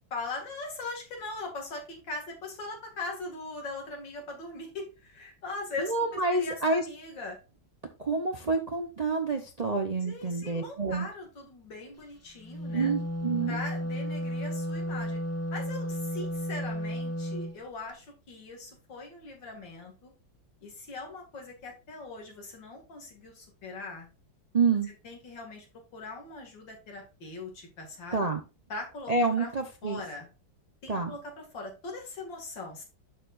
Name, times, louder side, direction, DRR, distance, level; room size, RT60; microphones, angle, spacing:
voice 1, 0.1-5.9 6.3-7.4 10.0-12.9 13.5-15.2 15.5-20.1 20.6-24.1 25.0-25.7 25.9-28.3 28.7-29.1 29.4-29.5 29.8-30.3 30.8-32.8, left 3 dB, 70° left, 1 dB, 2.8 m, -40 dB
voice 2, 5.8-6.8 8.0-11.1 12.7-13.6 24.5-24.9 28.1-28.4 29.1-30.0 30.9-31.1, right 3 dB, 85° right, 4 dB, 0.3 m, -28 dB
Wind instrument woodwind instrument, 12.4-17.6, equal, 20° left, 0.4 m, -33 dB
11.5 x 4.7 x 2.5 m, 0.31 s
omnidirectional pair, 2.1 m